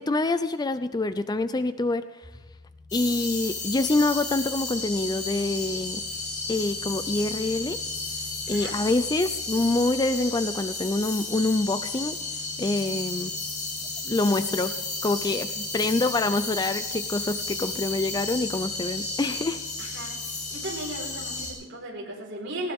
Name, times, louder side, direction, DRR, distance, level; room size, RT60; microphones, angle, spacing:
voice 1, 0.0-2.3 2.9-6.0 6.5-7.8 8.5-12.2 12.6-13.3 14.0-14.7 15.0-19.6, left 2 dB, 20° left, 11 dB, 0.4 m, -26 dB
sound 1, 2.2-21.5, left 3 dB, 20° right, 2.2 m, -48 dB
sound 2, 2.9-21.5, left 3 dB, 35° left, 5.8 m, -33 dB
voice 2, 19.8-20.1 20.5-22.7, right 1 dB, 55° right, -3 dB, 4.4 m, -36 dB
19.0 x 17.0 x 3.6 m, 1.2 s
head